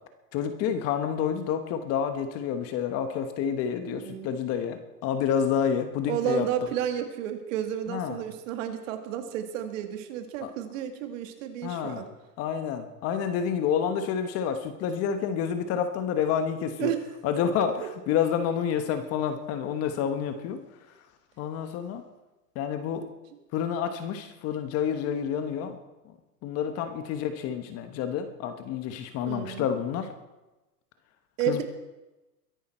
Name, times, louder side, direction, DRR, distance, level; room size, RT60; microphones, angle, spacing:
voice 1, 0.3-6.5 7.9-8.2 10.4-10.5 11.6-12.0 12.4-16.9 17.2-20.6 21.4-22.0 22.5-23.1 23.5-25.8 26.4-30.1 31.5-31.6, left 8 dB, 30° left, 8 dB, 1.2 m, -29 dB
voice 2, 3.8-4.4 6.1-12.1 16.8-17.0 29.3-29.7 31.4-31.6, right 9 dB, 50° right, 7 dB, 2.0 m, -31 dB
22.5 x 10.5 x 4.4 m, 1.1 s
hypercardioid pair, 140°, 48 cm